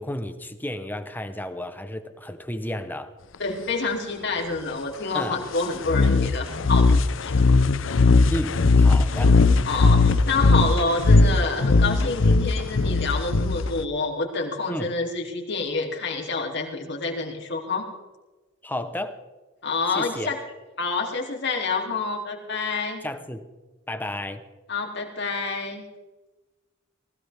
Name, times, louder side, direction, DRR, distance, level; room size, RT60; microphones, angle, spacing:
voice 1, 0.0-3.1 5.1-5.4 8.3-9.4 14.7-14.9 18.6-19.2 19.9-20.3 23.0-23.4 23.9-24.4, left 1 dB, 10° left, 9 dB, 1.2 m, -32 dB
voice 2, 3.4-7.4 9.6-17.9 19.6-20.4 20.8-23.0 24.7-25.8, left 3 dB, 60° left, 0 dB, 3.5 m, -28 dB
sound 1, 5.9-13.8, left 3 dB, 75° left, 0.7 m, -19 dB
19.5 x 16.5 x 3.7 m, 1.2 s
head